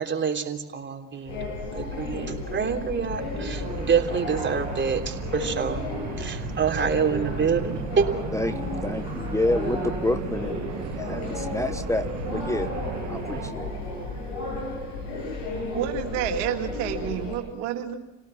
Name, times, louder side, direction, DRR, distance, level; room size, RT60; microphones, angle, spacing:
voice 1, 0.0-1.5 1.7-5.8 6.2-8.1, right 6 dB, 30° right, 3 dB, 3.3 m, -27 dB
sound 1, 1.3-17.4, left 2 dB, 80° left, 6.9 m, -33 dB
sound 2, 3.1-13.5, right 10 dB, 50° right, 1.3 m, -36 dB
voice 2, 8.3-12.7 13.1-13.7, left 1 dB, 10° left, 9 dB, 1.2 m, -29 dB
voice 3, 15.7-17.9, right 9 dB, 75° right, 3 dB, 2.3 m, -29 dB
28.5 x 17.5 x 5.9 m, 0.98 s
hypercardioid pair, 60°, 35 cm